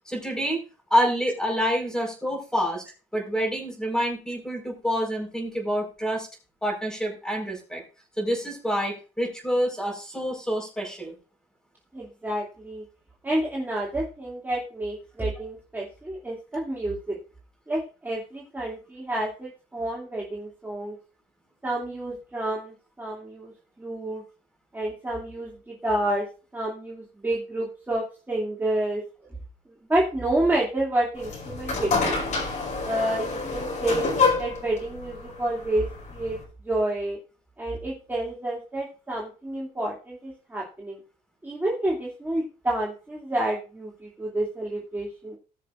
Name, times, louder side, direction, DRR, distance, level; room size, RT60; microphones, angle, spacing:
voice 1, 0.0-0.6 0.9-2.8 3.1-6.3 6.6-7.8 8.2-11.1, equal, 5° left, 1 dB, 4.9 m, -27 dB
voice 2, 11.9-12.8 13.2-17.2 17.7-21.0 21.6-23.5 23.8-24.2 24.7-26.3 26.5-29.0 29.9-32.2 32.8-34.1 34.4-36.4 36.6-37.2 37.6-41.0 41.4-45.4, right 1 dB, 10° right, -4 dB, 2.6 m, -29 dB
sound 1, 31.2-36.4, left 4 dB, 45° left, 5.1 m, -27 dB
19.5 x 6.5 x 2.6 m, 0.34 s
cardioid pair, 110°, 17 cm